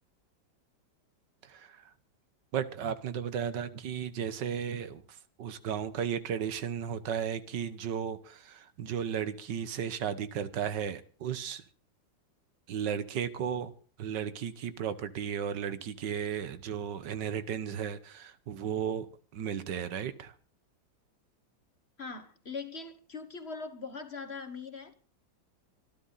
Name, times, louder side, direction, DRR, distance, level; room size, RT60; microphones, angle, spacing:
voice 1, 1.4-1.9 2.5-11.6 12.7-13.7 14.0-19.1 19.3-20.3, right 8 dB, 70° right, 1.6 m, -34 dB
voice 2, 22.0-24.9, left 4 dB, 35° left, 1.5 m, -41 dB
25.5 x 11.5 x 4.0 m
omnidirectional pair, 2.0 m